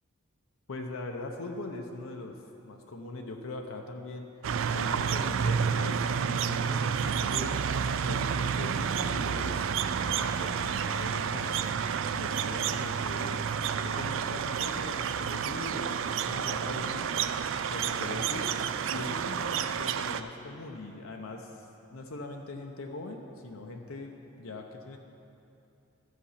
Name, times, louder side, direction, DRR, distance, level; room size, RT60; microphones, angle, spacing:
voice 1, 0.7-2.4 2.6-4.3 4.7-7.5 8.0-9.6 10.1-11.6 12.1-13.4 13.8-17.2 17.7-18.5 18.9-25.0, left 2 dB, 85° left, 2 dB, 0.7 m, -41 dB
sound 1, 4.4-20.2, right 7 dB, 70° right, 0.4 m, -30 dB
11.0 x 6.7 x 5.7 m, 2.7 s
head